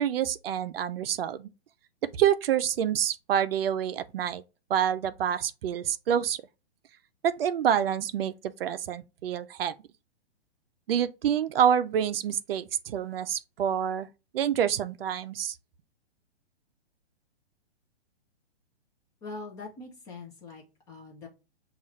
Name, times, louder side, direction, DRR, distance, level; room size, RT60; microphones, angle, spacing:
voice 1, 0.0-1.5 2.0-4.4 4.7-6.4 7.2-9.7 10.9-14.1 14.3-15.6, right 9 dB, 60° right, 0.5 m, -27 dB
voice 2, 19.2-21.3, left 3 dB, 10° left, 0.4 m, -43 dB
7.0 x 2.4 x 3.1 m
hypercardioid pair, 145°, 34 cm